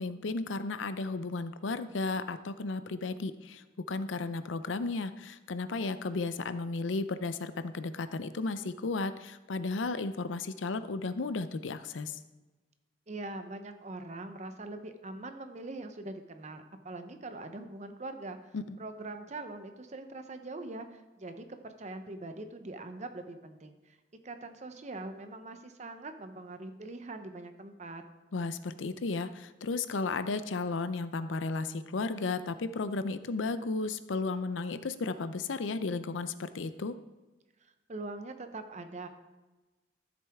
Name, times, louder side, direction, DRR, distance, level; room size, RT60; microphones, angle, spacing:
voice 1, 0.0-3.6 3.9-12.2 18.5-18.6 28.3-37.0, left 3 dB, 85° left, 12 dB, 0.6 m, -34 dB
voice 2, 13.1-18.4 18.8-24.0 24.2-28.0 37.6-39.1, right 2 dB, 40° right, 7 dB, 0.8 m, -42 dB
13.0 x 7.6 x 3.5 m, 1.2 s
head